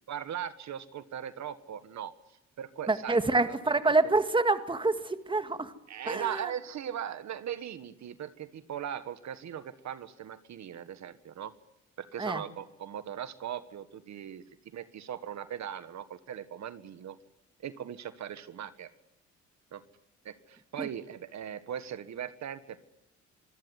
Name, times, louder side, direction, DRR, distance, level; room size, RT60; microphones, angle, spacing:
voice 1, 0.1-3.8 5.9-11.5 12.0-14.4 14.7-17.2 17.6-18.9 19.7-19.8 20.2-22.8, right 9 dB, 65° right, 12 dB, 1.6 m, -39 dB
voice 2, 2.9-5.7 6.1-6.5 12.2-12.4 20.8-20.9, right 3 dB, 15° right, 9 dB, 2.0 m, -27 dB
25.5 x 16.5 x 9.6 m, 0.87 s
cardioid pair, 90°, 30 cm